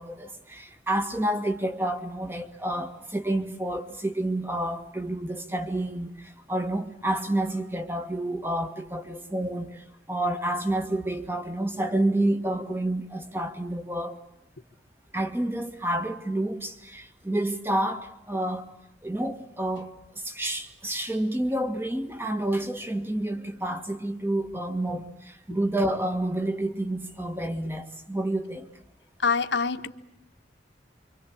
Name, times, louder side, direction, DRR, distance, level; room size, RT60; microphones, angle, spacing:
voice 1, 0.0-9.8 10.1-14.2 15.1-18.7 19.0-19.9 20.2-28.6, right 1 dB, 10° right, 1.9 m, -29 dB
voice 2, 29.2-29.9, left 5 dB, 75° left, 1.5 m, -25 dB
26.5 x 25.5 x 8.6 m
head